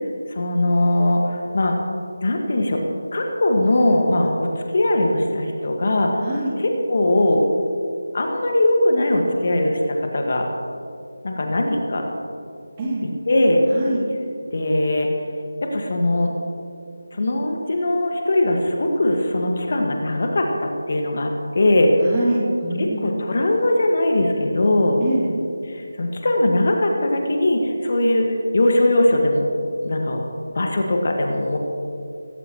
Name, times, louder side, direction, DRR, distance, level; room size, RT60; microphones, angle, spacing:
voice 1, 0.3-1.7 2.2-2.8 3.1-6.2 6.6-7.4 8.1-10.5 11.2-12.1 13.3-13.6 14.5-15.1 15.6-16.3 17.1-21.3 21.5-21.9 22.8-25.0 25.7-29.5 29.8-30.2 30.5-31.6, left 1 dB, 45° left, 2 dB, 1.7 m, -20 dB
voice 2, 22.1-23.1 25.0-25.3, right 1 dB, 20° right, -4 dB, 2.5 m, -24 dB
17.0 x 16.0 x 3.0 m, 2.4 s
figure-of-eight pair, 160°, 0 cm